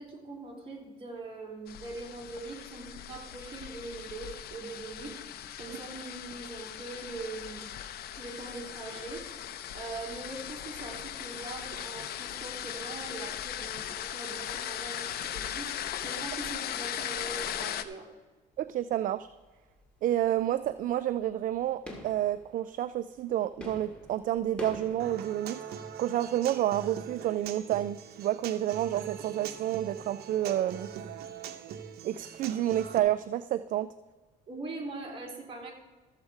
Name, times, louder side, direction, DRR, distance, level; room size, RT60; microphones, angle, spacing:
voice 1, 0.0-5.2 5.6-7.6 8.1-18.1 34.5-35.7, right 3 dB, 30° right, 0 dB, 3.1 m, -42 dB
sound 1, 1.7-17.8, left 11 dB, 65° left, 0.7 m, -38 dB
sound 2, 18.5-18.9 19.2-25.0, equal, 5° left, 2.2 m, -46 dB
voice 2, 18.6-19.3 20.0-25.6 26.0-30.9 32.0-33.9, right 12 dB, 55° right, 13 dB, 0.4 m, -29 dB
Human voice / Acoustic guitar, 25.0-33.0, right 8 dB, 70° right, 0.9 m, -42 dB
13.5 x 7.3 x 4.8 m, 1.3 s
cardioid pair, 110°, 17 cm